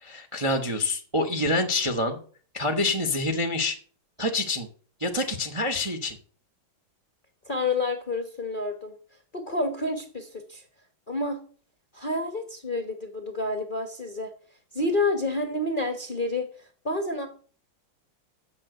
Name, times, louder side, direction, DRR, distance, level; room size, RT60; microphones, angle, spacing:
voice 1, 0.0-2.2 2.5-3.8 4.2-4.7 5.0-6.2, left 2 dB, 25° right, 6 dB, 0.7 m, -26 dB
voice 2, 7.5-8.9 9.3-10.6 11.1-11.4 11.9-14.3 14.7-16.5 16.8-17.3, left 2 dB, 35° left, 6 dB, 0.9 m, -29 dB
7.5 x 7.3 x 7.6 m, 0.43 s
omnidirectional pair, 2.3 m